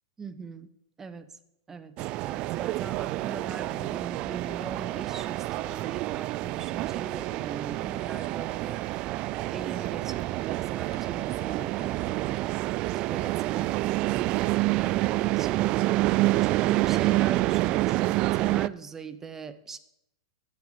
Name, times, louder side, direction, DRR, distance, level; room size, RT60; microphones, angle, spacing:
voice 1, 0.2-0.7 1.0-1.4 1.7-2.0 2.2-8.8 9.5-12.4 12.9-13.7 14.7-15.7 16.4-19.8, right 5 dB, 15° right, 12 dB, 1.1 m, -41 dB
sound 1, 2.0-18.7, right 18 dB, 40° right, 0.3 m, -28 dB
sound 2, 7.8-8.7 9.8-9.9 10.3-12.2 12.6-13.6, left 6 dB, 75° left, 2.0 m, -56 dB
10.5 x 7.5 x 8.2 m, 0.81 s
hypercardioid pair, 110°, 2 cm